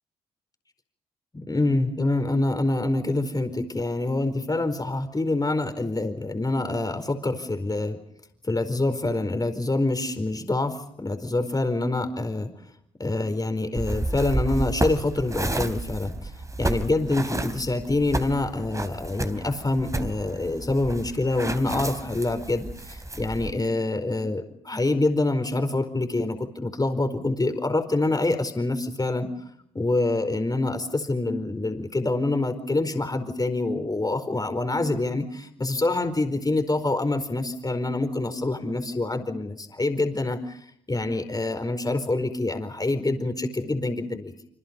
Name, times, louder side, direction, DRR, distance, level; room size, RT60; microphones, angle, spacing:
voice 1, 1.3-8.0 8.4-12.5 13.0-16.3 16.6-29.3 29.7-40.6 40.9-44.3, left 2 dB, 20° left, 8 dB, 4.7 m, -26 dB
sound 1, 13.8-23.5, right 2 dB, 20° right, 3.6 m, -31 dB
28.0 x 26.5 x 5.5 m, 0.70 s
hypercardioid pair, 50°, 17 cm